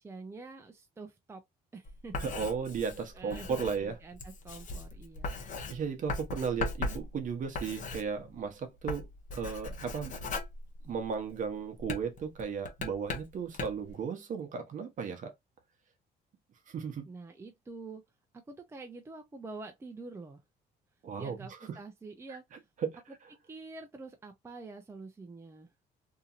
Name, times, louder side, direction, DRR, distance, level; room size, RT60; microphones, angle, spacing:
voice 1, 0.0-1.4 1.7-2.2 3.1-5.5 17.1-18.0 18.5-20.4 21.2-22.5 23.1-23.2 23.5-25.7, right 3 dB, 15° right, 0.6 m, -46 dB
Writing, 1.9-8.5 8.8-11.3 11.8-13.9, left 3 dB, 50° left, 0.8 m, -39 dB
voice 2, 2.2-4.0 5.7-10.2 10.8-15.3 16.7-17.0 21.0-21.4 21.7-21.8 22.8-23.0, right 6 dB, 50° right, 0.9 m, -35 dB
2.8 x 2.7 x 2.4 m
cardioid pair, 110°, 17 cm